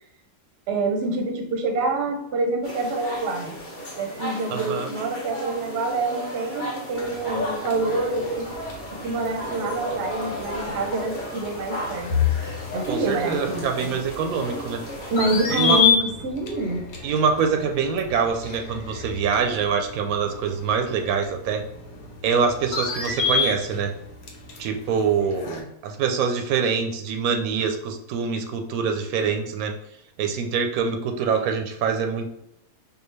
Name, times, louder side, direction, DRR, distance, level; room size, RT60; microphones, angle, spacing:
voice 1, 0.7-3.5 4.0-8.6 8.9-12.1 12.7-13.9 15.1-16.8, right 2 dB, 60° right, 4 dB, 0.9 m, -27 dB
sound 1, 2.6-15.9, equal, 40° left, 1.1 m, -34 dB
voice 2, 4.5-4.9 12.9-14.8 15.5-15.8 17.0-21.6 22.2-23.9 24.6-29.7 30.2-32.3, right 6 dB, 85° right, 4 dB, 1.0 m, -25 dB
sound 2, 6.9-25.6, left 6 dB, 85° left, 1.2 m, -30 dB
4.6 x 2.3 x 3.2 m, 0.79 s
omnidirectional pair, 1.5 m